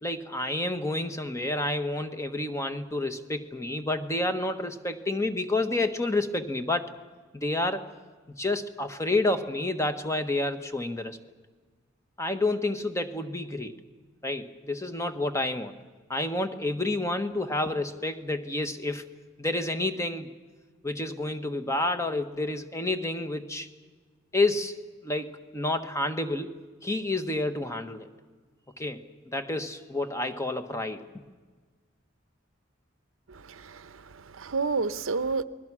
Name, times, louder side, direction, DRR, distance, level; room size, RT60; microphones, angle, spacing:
voice 1, 0.0-6.9 7.3-7.8 8.4-11.2 12.2-13.8 14.2-15.7 16.1-19.1 19.4-20.3 20.8-23.7 24.3-26.5 26.8-28.1 28.8-29.0 29.3-31.0, left 2 dB, 15° left, 1.2 m, -29 dB
voice 2, 33.3-35.4, right 4 dB, 90° right, 0.8 m, -30 dB
29.0 x 21.0 x 6.2 m
head